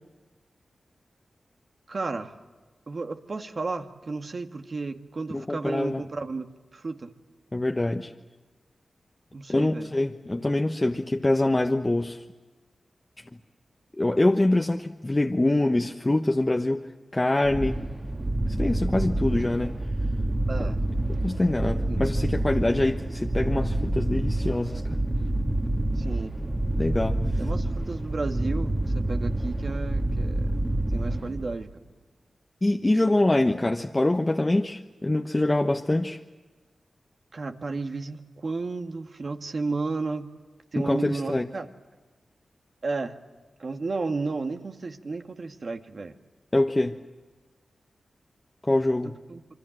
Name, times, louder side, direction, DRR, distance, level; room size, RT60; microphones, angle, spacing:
voice 1, 1.9-2.4 2.9-7.1 9.3-9.9 20.5-20.8 21.9-22.1 26.0-26.4 27.3-30.6 30.9-31.7 37.3-40.3 40.7-41.7 42.8-43.2 43.6-46.1 49.0-49.4, right 3 dB, 55° right, 6 dB, 1.9 m, -33 dB
voice 2, 5.3-6.0 7.5-8.1 9.5-12.2 14.0-16.9 17.1-17.8 18.5-19.7 21.1-25.0 26.8-27.2 32.6-36.2 40.7-41.5 46.5-47.0 48.6-49.1, left 2 dB, 25° left, 3 dB, 1.2 m, -24 dB
sound 1, 17.4-31.7, right 1 dB, 25° right, 2.4 m, -27 dB
27.0 x 24.0 x 7.8 m, 1.3 s
cardioid pair, 60°, 0 cm